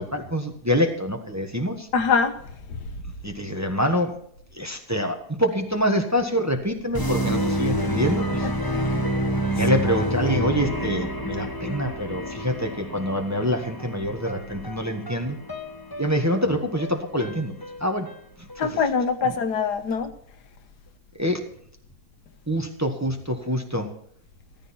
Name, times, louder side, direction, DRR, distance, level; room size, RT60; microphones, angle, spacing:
voice 1, 0.0-1.9 3.2-4.1 4.5-8.5 9.5-15.4 16.0-18.1 18.6-18.8 19.2-19.3 21.2-21.4 22.5-23.9, equal, 10° right, 1.2 m, -26 dB
voice 2, 1.9-2.3 8.7-8.8 18.6-20.1, left 5 dB, 85° left, 1.6 m, -23 dB
sound 1, 6.9-18.7, equal, 15° left, 1.2 m, -28 dB
14.0 x 13.5 x 4.3 m
omnidirectional pair, 1.7 m